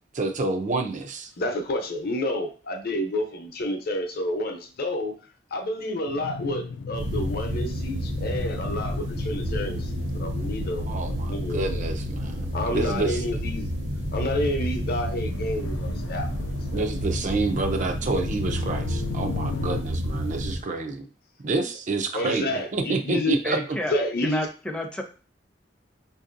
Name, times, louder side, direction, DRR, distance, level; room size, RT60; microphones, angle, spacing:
voice 1, 0.1-1.3 10.9-13.2 16.7-21.1 21.4-23.6, right 3 dB, 45° right, 5 dB, 0.5 m, -28 dB
voice 2, 1.4-5.1 5.5-10.8 11.3-11.8 12.5-13.7 14.1-16.9 22.1-23.4 23.9-24.5, left 1 dB, 55° left, 5 dB, 0.7 m, -29 dB
sound 1, 6.1-19.8, left 6 dB, 85° left, 0.3 m, -39 dB
sound 2, 6.9-20.6, equal, 65° right, 1.0 m, -30 dB
voice 3, 23.4-23.9 24.2-25.0, equal, 5° left, 2 dB, 0.5 m, -30 dB
5.1 x 2.6 x 2.5 m, 0.36 s
head